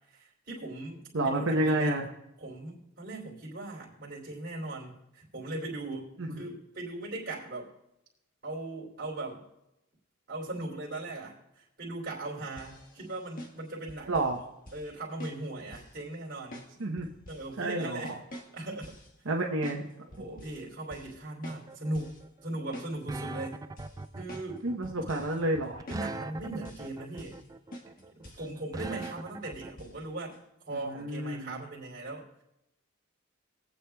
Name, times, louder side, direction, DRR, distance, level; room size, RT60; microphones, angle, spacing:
voice 1, 0.1-1.9 2.4-7.7 8.4-9.4 10.3-14.1 14.7-16.6 17.3-18.2 18.5-19.0 20.1-22.2 22.4-23.6 24.1-24.6 25.9-27.4 28.1-30.3 30.7-32.4, right 2 dB, 50° right, -5 dB, 3.2 m, -39 dB
voice 2, 1.1-2.1 6.2-6.3 14.1-14.4 16.8-17.1 17.6-18.0 19.3-19.9 24.6-25.8 30.8-31.6, right 1 dB, 75° right, 0 dB, 0.9 m, -29 dB
sound 1, 12.6-14.4 14.7-14.9 15.2-16.0 16.5-17.5 17.8-19.1 19.6-19.8 20.1-20.6 20.9-21.2 21.4-22.2 22.5-23.3 23.8-24.6 24.8-25.4 25.9-26.1 26.4-26.9 27.2-27.5 27.7-28.5 29.0-29.2 29.5-30.0 30.3-30.4, left 1 dB, 45° left, 1.5 m, -47 dB
sound 2, 21.5-29.7, right 2 dB, 15° right, 0.3 m, -41 dB
22.5 x 8.4 x 2.3 m, 0.85 s
head